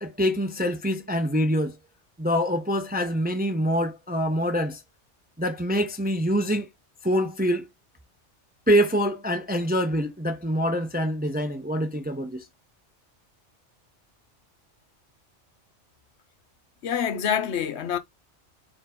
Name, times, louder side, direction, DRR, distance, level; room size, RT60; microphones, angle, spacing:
voice 1, 0.0-1.8 2.2-4.8 5.4-6.7 7.0-7.6 8.7-12.4, equal, 10° right, 0.4 m, -25 dB
voice 2, 16.8-18.0, left 8 dB, 70° left, 0.9 m, -26 dB
4.5 x 2.8 x 3.6 m
omnidirectional pair, 1.2 m